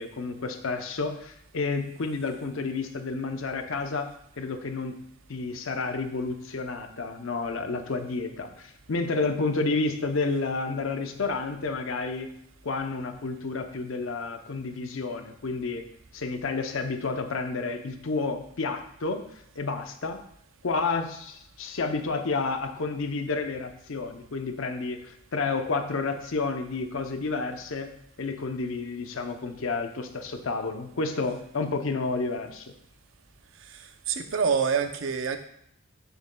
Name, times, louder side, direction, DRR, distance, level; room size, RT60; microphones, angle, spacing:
voice 1, 0.0-4.1 4.4-4.9 5.3-12.3 12.6-15.8 16.1-19.2 19.6-20.2 20.6-27.9 28.2-32.7, left 3 dB, 75° left, 6 dB, 0.6 m, -30 dB
voice 2, 33.6-35.4, right 6 dB, 70° right, 8 dB, 0.6 m, -27 dB
6.7 x 6.5 x 2.2 m, 0.72 s
head